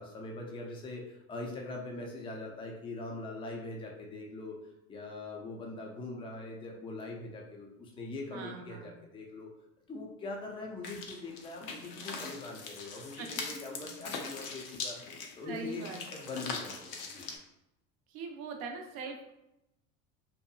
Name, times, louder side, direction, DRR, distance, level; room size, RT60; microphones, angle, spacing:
voice 1, 0.0-4.6 4.9-9.5 9.9-15.0 15.4-15.8 16.1-17.3, left 2 dB, 10° left, 0 dB, 0.4 m, -42 dB
voice 2, 8.3-9.0 13.2-13.4 15.5-16.0 18.1-19.3, right 4 dB, 55° right, 3 dB, 0.7 m, -41 dB
sound 1, 10.8-17.4, left 4 dB, 65° left, 0.6 m, -42 dB
2.8 x 2.1 x 2.3 m, 0.90 s
hypercardioid pair, 75°, 45 cm